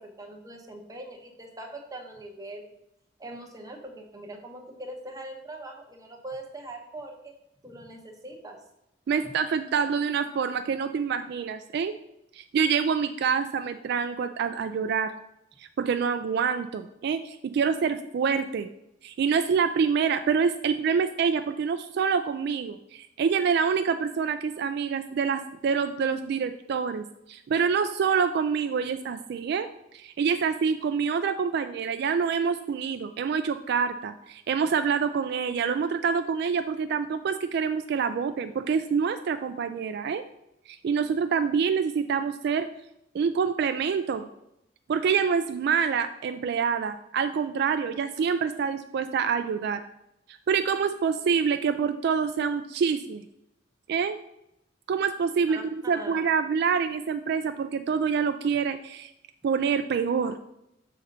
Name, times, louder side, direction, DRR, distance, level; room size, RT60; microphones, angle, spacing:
voice 1, 0.0-2.6 3.2-7.3 7.6-8.6 55.5-56.3, right 1 dB, 20° right, 2 dB, 0.9 m, -42 dB
voice 2, 9.1-11.9 12.3-15.1 15.6-18.7 19.0-29.7 29.9-40.2 40.7-42.7 43.1-44.3 44.9-49.8 50.3-53.2 53.9-54.2 54.9-55.6 55.9-59.1 59.4-60.4, right 6 dB, 60° right, 9 dB, 0.3 m, -26 dB
6.4 x 3.9 x 5.3 m, 0.82 s
head